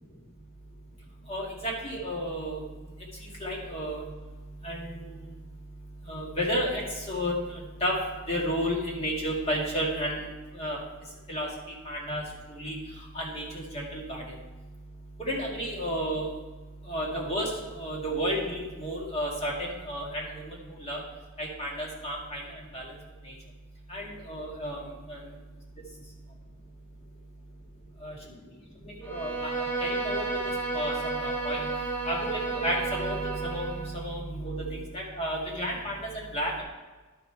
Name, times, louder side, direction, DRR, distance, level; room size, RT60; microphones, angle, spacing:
voice 1, 1.3-2.6 3.4-4.0 4.6-4.9 6.1-7.9 8.3-10.3 10.6-10.8 11.3-11.5 11.9-12.2 12.5-12.8 13.1-14.2 15.2-16.3 16.9-19.5 19.9-20.2 20.8-21.0 21.4-22.4 22.7-22.8 23.9-24.8 25.1-25.2 28.0-28.1 29.0-30.3 30.7-31.6 32.0-36.6, equal, 30° left, -3 dB, 1.9 m, -32 dB
Bowed string instrument, 29.0-34.0, right 3 dB, 10° left, 1.1 m, -32 dB
11.5 x 5.3 x 4.5 m, 1.3 s
head